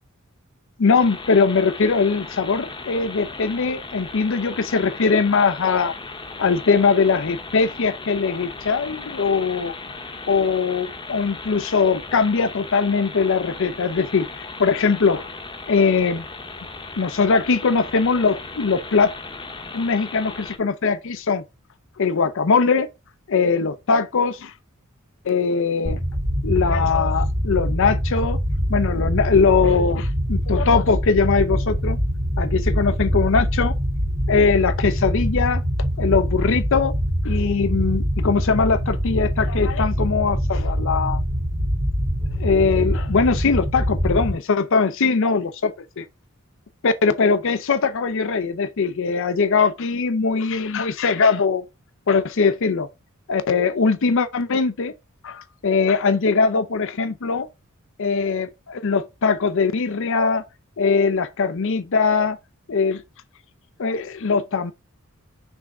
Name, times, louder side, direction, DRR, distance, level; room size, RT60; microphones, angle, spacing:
voice 1, 0.8-5.9 6.4-9.7 10.3-15.3 15.7-16.3 17.0-19.1 19.7-21.4 22.0-22.9 23.3-24.5 25.3-26.0 26.4-28.4 28.7-32.0 32.4-33.7 34.3-35.6 36.0-36.9 37.2-41.2 42.4-46.0 46.8-51.6 52.1-52.9 53.3-54.9 55.2-57.5 58.0-60.4 60.8-62.4 62.7-63.0 63.8-64.7, left 5 dB, 60° left, 0.6 m, -21 dB
sound 1, 0.9-20.6, left 3 dB, 20° left, 0.8 m, -37 dB
sound 2, 25.8-44.3, equal, 65° right, 1.9 m, -24 dB
6.2 x 3.4 x 4.7 m
head